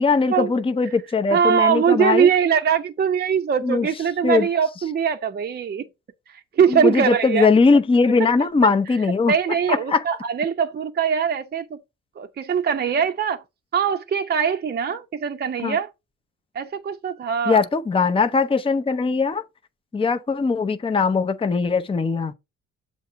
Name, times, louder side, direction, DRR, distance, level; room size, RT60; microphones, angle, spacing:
voice 1, 0.0-2.3 3.6-3.9 4.2-4.5 6.7-9.3 9.7-10.0 15.6-15.8 17.5-19.4 19.9-22.3, left 4 dB, 20° left, 0.6 m, -20 dB
voice 2, 1.3-5.9 6.3-7.5 9.3-11.8 12.2-13.4 13.7-15.9 16.5-17.6, right 7 dB, 35° right, 0.6 m, -22 dB
7.1 x 2.9 x 5.5 m
cardioid pair, 90°, 30 cm